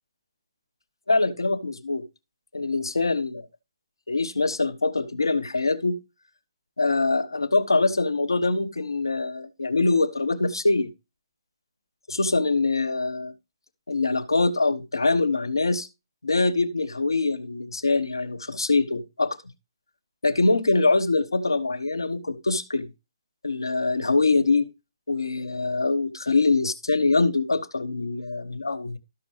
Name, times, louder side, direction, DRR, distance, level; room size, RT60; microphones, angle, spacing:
voice 1, 1.1-2.0 2.5-3.4 4.1-6.0 6.8-10.9 12.1-13.3 13.9-15.9 16.2-19.4 20.2-22.9 23.4-24.7 25.1-29.0, left 3 dB, 70° left, 0.9 m, -24 dB
12.5 x 6.0 x 3.0 m
figure-of-eight pair, 135°, 2 cm